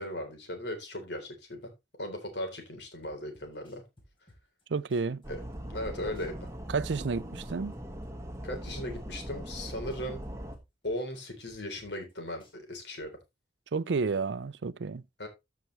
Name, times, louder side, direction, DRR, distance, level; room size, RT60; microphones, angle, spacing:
voice 1, 0.0-1.7 2.0-3.8 5.3-5.4 5.7-6.5 8.4-10.2 10.8-13.1 15.2-15.3, left 1 dB, 75° left, 3.6 m, -37 dB
sound 1, 3.0-4.6 4.9-7.1 7.4-9.6 9.9-12.1 12.4-13.0, left 1 dB, 30° left, 4.0 m, -59 dB
voice 2, 4.7-5.2 6.7-7.7 13.7-15.0, right 4 dB, 85° right, 0.5 m, -31 dB
sound 2, 5.2-10.6, equal, 15° right, 1.5 m, -40 dB
14.0 x 5.9 x 3.2 m
head